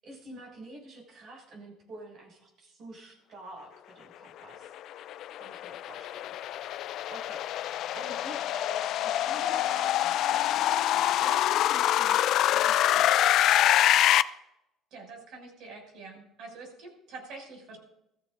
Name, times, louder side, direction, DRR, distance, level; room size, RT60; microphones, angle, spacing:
voice 1, 0.0-4.7 5.4-6.4 7.1-14.0, right 2 dB, 50° right, 0 dB, 6.8 m, -48 dB
sound 1, 4.6-14.2, left 12 dB, 60° left, 0.4 m, -25 dB
voice 2, 14.9-17.8, right 3 dB, 65° right, 1 dB, 6.6 m, -45 dB
22.0 x 14.5 x 2.6 m, 0.86 s
cardioid pair, 130°, 0 cm